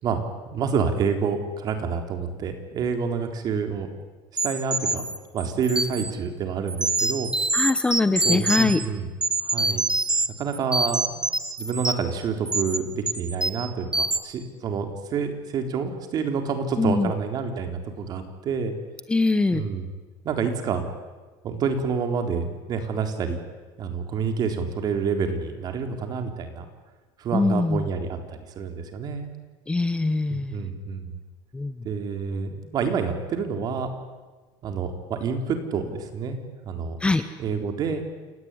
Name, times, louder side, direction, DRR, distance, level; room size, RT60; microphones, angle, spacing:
voice 1, 0.0-3.9 4.4-5.0 5.3-7.3 8.2-9.1 9.4-9.8 10.4-11.1 11.6-18.8 19.5-19.9 20.2-20.8 21.4-23.4 23.8-26.7 27.2-29.3 30.3-31.2 31.8-33.9 34.6-36.4 36.6-37.0 37.4-38.0, right 5 dB, 40° right, 6 dB, 3.8 m, -28 dB
sound 1, 4.4-6.1 6.7-8.9 9.2-10.3 10.5-12.1 12.5-12.8 13.1-13.7 13.9-14.2, right 2 dB, 5° right, 1.4 m, -25 dB
voice 2, 7.5-8.8 16.8-17.1 19.1-19.6 27.3-27.9 29.7-30.7 31.5-31.9 37.0-37.2, left 3 dB, 10° left, 11 dB, 1.0 m, -23 dB
28.5 x 18.5 x 9.9 m, 1.3 s
cardioid pair, 150°, 10 cm